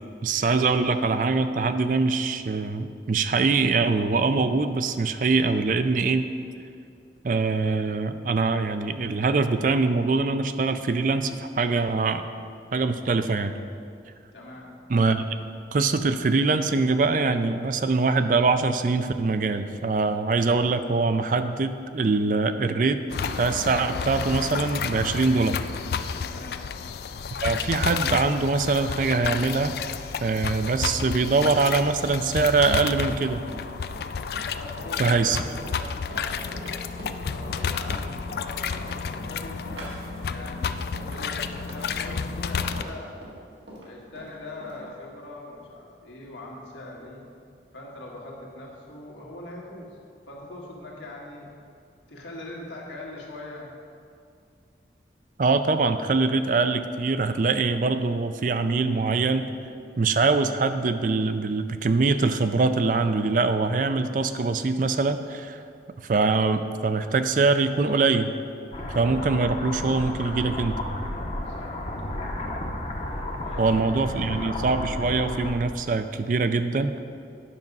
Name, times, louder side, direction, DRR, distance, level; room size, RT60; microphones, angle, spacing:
voice 1, 0.2-6.3 7.2-12.2 12.7-13.5 14.9-15.4 15.7-23.0 23.4-25.6 27.4-29.7 30.2-33.4 35.0-35.4 55.4-59.5 60.0-65.6 66.0-68.3 68.9-70.8 73.6-76.9, right 3 dB, 45° right, 10 dB, 0.4 m, -23 dB
voice 2, 14.3-14.7 26.2-26.6 34.5-36.7 37.3-39.6 40.2-43.2 43.8-47.2 47.7-49.9 50.2-51.5 52.1-53.7 71.5-72.2 73.4-73.7 74.0-74.5, left 2 dB, 90° left, -3 dB, 1.8 m, -41 dB
sound 1, 23.1-42.8, left 6 dB, 60° left, 0.3 m, -31 dB
Run, 32.9-44.8, right 1 dB, 85° right, 1.9 m, -43 dB
sound 2, 68.7-75.5, left 1 dB, 35° left, 0.7 m, -32 dB
9.7 x 5.9 x 5.3 m, 2.3 s
head